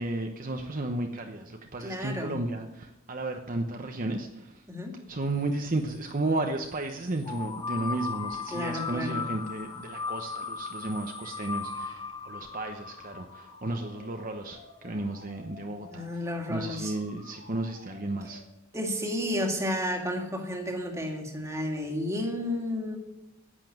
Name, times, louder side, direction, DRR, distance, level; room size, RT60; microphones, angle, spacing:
voice 1, 0.0-4.6 5.1-16.1 16.5-18.4, right 2 dB, 40° right, 4 dB, 0.9 m, -33 dB
voice 2, 1.8-2.4 4.7-5.0 8.5-9.2 15.9-16.9 18.7-23.0, left 1 dB, 15° right, 2 dB, 2.1 m, -32 dB
sound 1, 7.2-14.0, left 5 dB, 20° left, 0.7 m, -37 dB
sound 2, 12.3-18.4, left 3 dB, 70° left, 4.0 m, -52 dB
11.0 x 8.4 x 9.2 m, 0.97 s
head